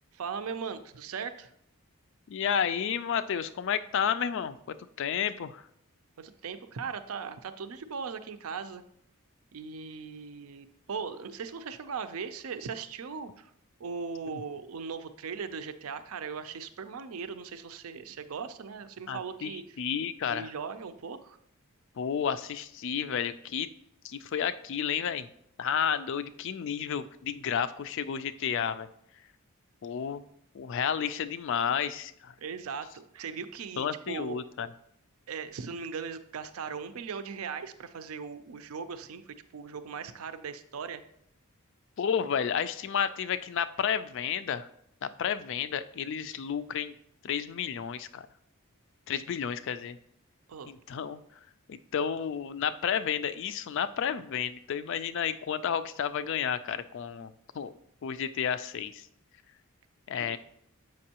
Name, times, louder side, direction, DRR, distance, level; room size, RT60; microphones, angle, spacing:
voice 1, 0.1-1.5 6.2-8.8 9.5-13.5 13.8-19.8 20.3-21.4 32.4-34.4 35.3-41.0 50.5-50.7 60.1-60.4, right 5 dB, 70° right, 11 dB, 0.5 m, -39 dB
voice 2, 2.3-5.6 14.3-14.4 19.1-19.5 19.8-20.5 22.0-23.7 24.0-25.3 25.6-28.9 29.8-30.2 30.5-32.3 33.8-34.7 42.0-44.7 45.0-46.9 47.2-48.3 49.1-50.0 50.7-51.2 51.7-57.7 58.0-59.1 60.1-60.4, left 8 dB, 55° left, 13 dB, 0.3 m, -31 dB
7.5 x 5.3 x 2.8 m, 0.72 s
head